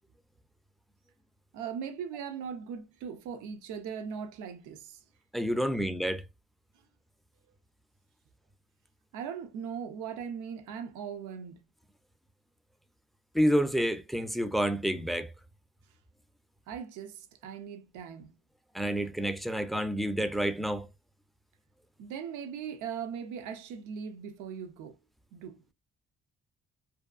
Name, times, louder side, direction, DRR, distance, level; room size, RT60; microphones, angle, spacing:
voice 1, 1.5-5.0 9.1-11.6 16.7-18.3 22.0-25.0 25.3-25.6, right 7 dB, 85° right, 0.5 m, -39 dB
voice 2, 5.3-6.2 13.3-15.3 18.7-20.9, equal, ahead, 0.3 m, -29 dB
2.7 x 2.2 x 2.4 m
supercardioid pair, 70°, 30 cm